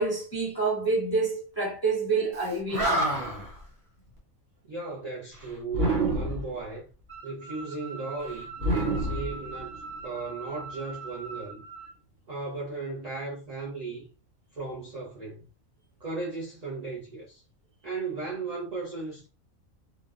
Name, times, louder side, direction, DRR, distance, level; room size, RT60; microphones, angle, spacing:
voice 1, 0.0-3.2, right 3 dB, 30° left, 0.4 m, -28 dB
Animal, 2.4-2.5 2.7-3.5 5.7-6.6 8.6-9.9, right 1 dB, 80° right, 1.2 m, -27 dB
voice 2, 4.7-6.8 7.2-11.6 12.3-14.1 14.5-15.5 16.0-17.4 17.8-19.3, right 4 dB, 60° right, 0.4 m, -36 dB
sound 1, 7.1-11.9, right 4 dB, 35° right, 1.2 m, -42 dB
2.6 x 2.1 x 2.3 m
omnidirectional pair, 1.4 m